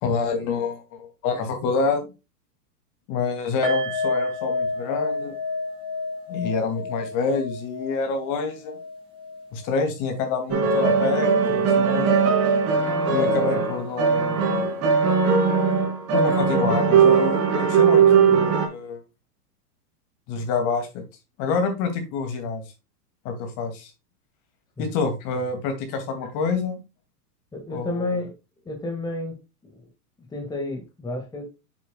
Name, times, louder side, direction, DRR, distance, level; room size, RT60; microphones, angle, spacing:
voice 1, 0.0-2.1 3.1-5.3 6.3-8.8 9.5-12.2 13.1-14.4 16.1-19.0 20.3-21.0 21.4-22.6 23.2-23.9 24.8-26.8 27.7-28.1, left 4 dB, 40° left, 2.3 m, -27 dB
sound 1, 3.6-10.8 11.1-11.3 11.7-11.8, left 3 dB, 10° right, 2.9 m, -30 dB
sound 2, 10.5-18.7, right 5 dB, 30° right, 3.3 m, -19 dB
voice 2, 27.5-28.3 28.7-29.4 29.6-29.9 30.3-31.5, left 2 dB, 10° left, 1.7 m, -31 dB
7.7 x 7.4 x 2.2 m
hypercardioid pair, 130°, 48 cm